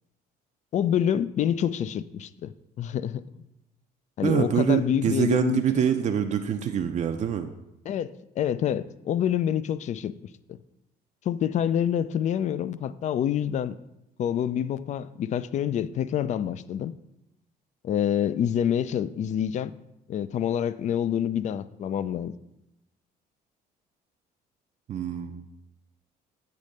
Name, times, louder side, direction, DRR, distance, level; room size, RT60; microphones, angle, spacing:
voice 1, 0.7-3.2 4.2-5.6 7.9-10.1 11.3-13.7 14.2-16.9 17.8-19.7 20.1-22.3, left 9 dB, 45° left, 16 dB, 0.4 m, -27 dB
voice 2, 4.2-7.5 24.9-25.4, right 8 dB, 45° right, 5 dB, 0.5 m, -25 dB
8.4 x 3.2 x 6.4 m, 0.87 s
cardioid pair, 110°, 17 cm